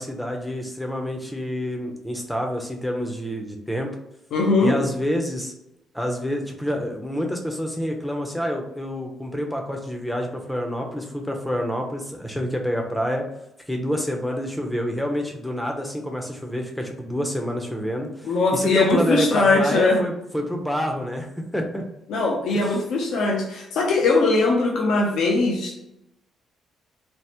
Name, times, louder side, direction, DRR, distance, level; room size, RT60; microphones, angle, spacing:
voice 1, 0.0-3.9 4.6-5.5 5.9-13.2 13.7-21.8 22.5-22.8, equal, 5° left, 2 dB, 0.6 m, -27 dB
voice 2, 4.3-4.8 18.2-20.0 22.1-25.8, left 3 dB, 75° left, -1 dB, 0.6 m, -20 dB
3.3 x 2.0 x 2.8 m, 0.86 s
cardioid pair, 90°, 0 cm